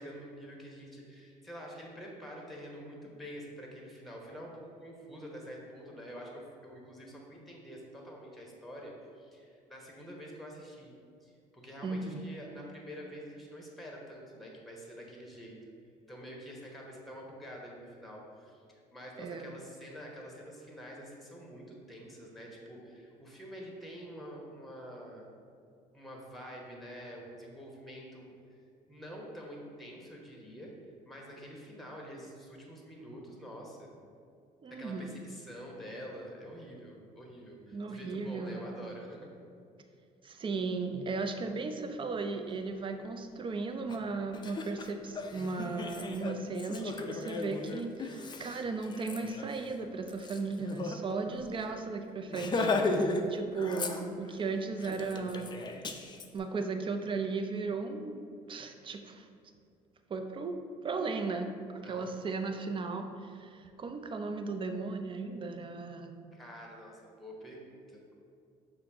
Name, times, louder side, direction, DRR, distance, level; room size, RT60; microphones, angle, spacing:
voice 1, 0.0-10.9 11.2-15.6 16.1-25.3 25.9-30.7 31.1-33.9 34.7-39.3 61.8-62.1 66.3-68.0, equal, ahead, -1 dB, 1.0 m, -47 dB
voice 2, 11.8-12.2 19.2-19.5 34.6-35.2 37.7-38.7 40.2-55.5 56.3-58.2 58.5-59.3 60.1-60.6 60.8-66.2, right 4 dB, 30° right, 6 dB, 0.4 m, -36 dB
Laughter, 43.9-44.0 44.3-51.0 51.3-51.4 51.7-51.9 52.3-53.3 53.5-54.4 54.8-56.3, left 3 dB, 30° left, 0.4 m, -35 dB
5.7 x 2.5 x 3.4 m, 2.3 s
supercardioid pair, 80°, 16 cm